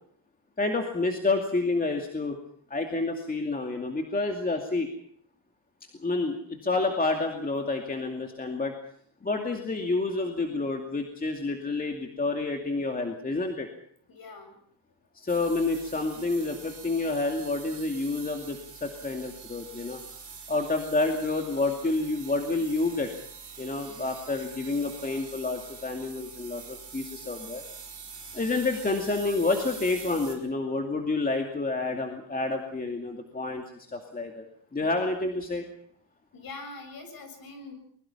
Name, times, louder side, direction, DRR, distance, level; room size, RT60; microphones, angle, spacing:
voice 1, 0.6-2.4 2.7-4.9 6.0-8.8 9.2-13.7 15.1-20.0 20.5-23.1 23.6-27.6 28.3-33.6 33.9-34.4 34.7-35.6, left 3 dB, 20° left, 3 dB, 2.5 m, -29 dB
voice 2, 14.1-14.6 36.3-37.7, left 3 dB, 50° left, 7 dB, 7.4 m, -43 dB
sound 1, 15.3-30.3, right 6 dB, 30° right, 5.6 m, -45 dB
23.5 x 22.0 x 5.8 m, 0.63 s
cardioid pair, 130°, 46 cm